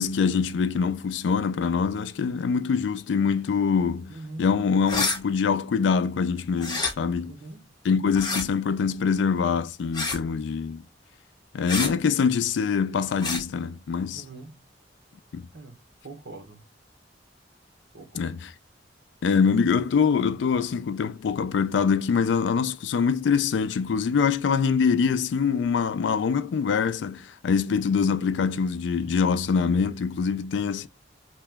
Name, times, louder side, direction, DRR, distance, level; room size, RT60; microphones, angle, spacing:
voice 1, 0.0-7.4 7.8-10.8 11.5-14.2 15.3-15.5 18.1-18.5 19.2-30.9, left 6 dB, 80° left, 0.3 m, -24 dB
voice 2, 4.1-4.5 7.3-7.7 14.1-14.6 15.5-15.8 16.0-16.6 17.9-18.3, right 2 dB, 85° right, 0.8 m, -42 dB
sound 1, 4.8-5.2 6.6-6.9 8.1-8.4 9.9-10.2 11.7-11.9 13.2-13.4, left 3 dB, 25° left, 0.9 m, -27 dB
2.9 x 2.2 x 3.3 m
head